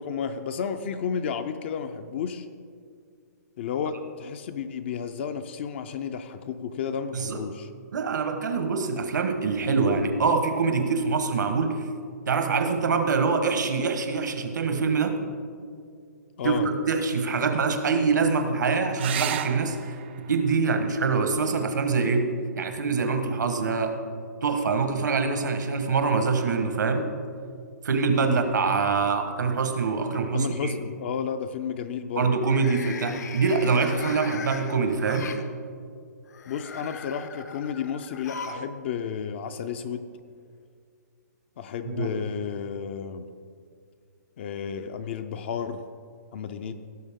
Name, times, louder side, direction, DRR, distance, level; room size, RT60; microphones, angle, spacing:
voice 1, 0.0-2.5 3.6-7.7 16.4-16.7 28.1-28.4 30.3-32.3 36.5-40.0 41.6-43.2 44.4-45.8 46.3-46.7, left 7 dB, 40° left, 8 dB, 0.5 m, -32 dB
voice 2, 7.9-11.8 12.3-15.2 16.4-16.6 16.9-19.8 20.3-22.3 22.6-24.0 24.4-27.1 27.8-30.7 32.2-35.3 41.8-42.1, right 4 dB, 80° right, 6 dB, 1.3 m, -24 dB
sound 1, 18.9-24.0 25.9-26.5 30.0-30.1 30.4-30.5, right 11 dB, 35° right, 0.4 m, -38 dB
sound 2, 29.0-29.5 29.9-30.2 32.3-35.4 36.3-38.7 39.0-39.1 40.2-40.3, left 5 dB, 65° left, 0.8 m, -40 dB
16.5 x 6.6 x 3.7 m, 2.2 s
hypercardioid pair, 160°, 10 cm